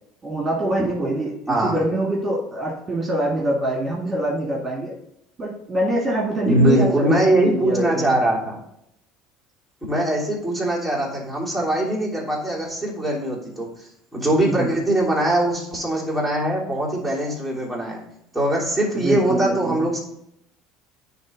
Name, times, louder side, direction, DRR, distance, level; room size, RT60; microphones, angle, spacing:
voice 1, 0.2-4.9 5.4-8.1 14.3-14.7 18.9-19.8, right 1 dB, 20° right, -3 dB, 2.3 m, -24 dB
voice 2, 6.5-8.6 9.9-18.0 18.3-20.0, right 1 dB, 5° left, -4 dB, 3.0 m, -22 dB
9.6 x 3.5 x 5.3 m, 0.77 s
supercardioid pair, 105°, 0 cm